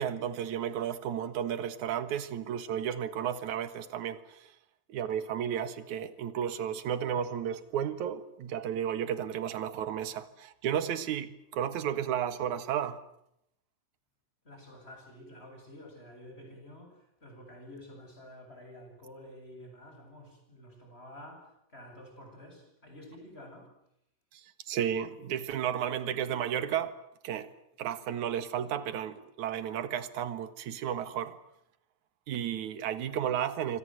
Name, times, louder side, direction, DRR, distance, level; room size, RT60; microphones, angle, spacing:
voice 1, 0.0-4.5 4.9-13.0 24.3-24.4 24.7-26.9 27.2-27.5 27.8-31.4 32.3-33.8, right 9 dB, 70° right, 3.0 m, -33 dB
voice 2, 14.4-23.7, left 1 dB, 20° left, 8.3 m, -50 dB
27.0 x 25.5 x 7.8 m
omnidirectional pair, 3.5 m